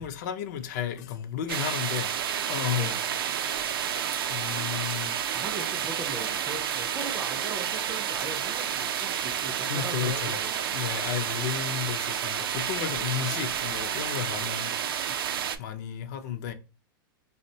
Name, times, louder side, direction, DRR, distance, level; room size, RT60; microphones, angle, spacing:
voice 1, 0.0-2.1 2.4-2.9 3.4-5.2 9.7-10.4 10.7-15.2 15.6-16.5, left 10 dB, 50° left, 0.4 m, -33 dB
sound 1, 1.5-15.6, right 9 dB, 90° right, 0.4 m, -30 dB
voice 2, 2.7-3.1 5.3-10.7 12.8-13.5, right 3 dB, 15° right, 0.4 m, -40 dB
3.5 x 2.1 x 2.6 m
supercardioid pair, 155°, 12 cm